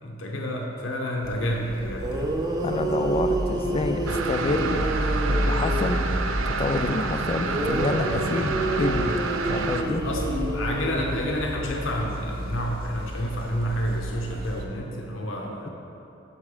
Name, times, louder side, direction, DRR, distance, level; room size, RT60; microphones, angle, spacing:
voice 1, 0.0-2.3 10.0-15.7, equal, 70° left, 0 dB, 0.8 m, -29 dB
sound 1, 1.2-14.7, equal, 50° right, 0.8 m, -32 dB
sound 2, 1.7-1.8 2.0-6.2 7.4-11.5, right 2 dB, 20° right, 0.6 m, -29 dB
voice 2, 2.6-4.8 5.3-6.0 6.5-9.2 9.4-10.0, left 3 dB, 30° left, 7 dB, 0.3 m, -28 dB
sound 3, 4.1-9.8, right 4 dB, 80° right, 0.5 m, -29 dB
7.2 x 4.5 x 4.9 m, 2.9 s
head